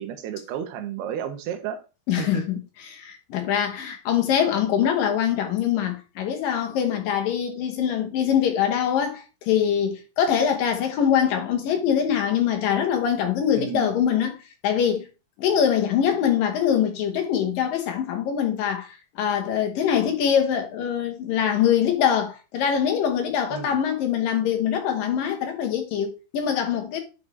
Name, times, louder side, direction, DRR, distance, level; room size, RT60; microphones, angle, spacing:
voice 1, 0.0-1.8 2.2-2.4 13.6-13.9 23.5-23.8, right 9 dB, 85° right, 3.1 m, -32 dB
voice 2, 2.1-2.6 2.9-14.4 14.6-15.1 15.4-27.0, left 8 dB, 70° left, 2.6 m, -23 dB
11.0 x 5.3 x 3.2 m
omnidirectional pair, 4.6 m